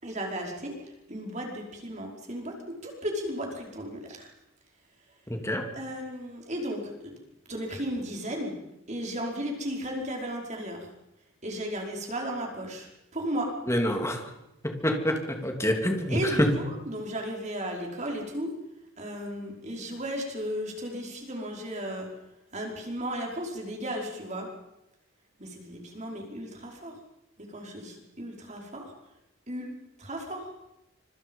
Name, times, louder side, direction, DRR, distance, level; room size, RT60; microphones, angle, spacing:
voice 1, 0.0-4.3 5.7-7.1 7.5-8.6 8.9-10.9 11.4-13.5 16.1-18.5 19.0-22.1 22.5-24.5 25.4-27.0 27.4-28.9 29.5-29.7 30.0-30.5, equal, 35° right, 1 dB, 5.2 m, -35 dB
voice 2, 5.3-5.6 13.7-14.2 14.6-16.5, equal, 15° left, 4 dB, 3.1 m, -26 dB
26.5 x 25.5 x 5.6 m, 0.89 s
head